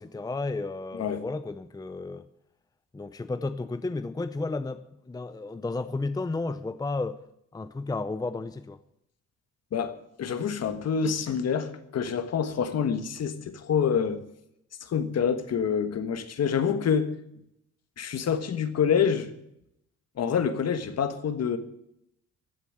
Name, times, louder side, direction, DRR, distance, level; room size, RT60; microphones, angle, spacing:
voice 1, 0.0-2.2 2.9-7.2 7.5-8.8, left 3 dB, 15° left, 0.6 m, -32 dB
voice 2, 9.7-14.2 14.9-17.1 18.0-19.3 20.2-21.6, left 7 dB, 55° left, 1.6 m, -27 dB
15.5 x 7.0 x 9.0 m
cardioid pair, 90°, 30 cm